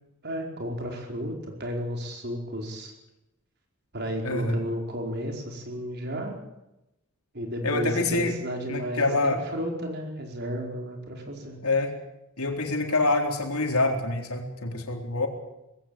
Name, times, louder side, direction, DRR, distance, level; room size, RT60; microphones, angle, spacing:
voice 1, 0.2-2.9 3.9-6.3 7.3-11.6, equal, 50° right, 2 dB, 4.8 m, -33 dB
voice 2, 4.2-4.6 7.6-8.4 8.7-9.4 11.6-12.0 12.4-15.3, left 2 dB, 90° left, 3 dB, 4.0 m, -26 dB
20.5 x 16.5 x 9.0 m, 0.91 s
head